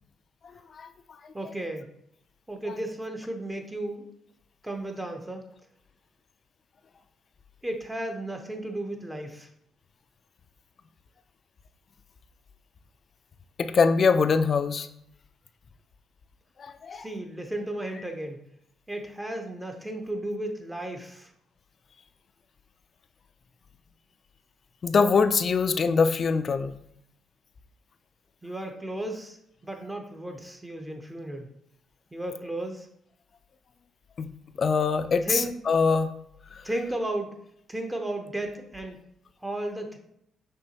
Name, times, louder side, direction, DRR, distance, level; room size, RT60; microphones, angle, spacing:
voice 1, 1.3-1.9 2.5-4.1 4.6-5.4 7.6-9.5 16.9-18.4 18.9-21.3 28.4-29.4 29.6-31.5 32.1-32.9 35.2-35.5 36.6-37.3 37.7-39.0 39.4-40.0, right 1 dB, 10° right, 3 dB, 0.7 m, -34 dB
voice 2, 13.6-14.9 16.6-17.1 24.8-26.7 34.2-34.3 34.6-36.1, left 5 dB, 45° left, 10 dB, 0.3 m, -23 dB
5.5 x 3.1 x 2.9 m, 0.73 s
cardioid pair, 90°, 0 cm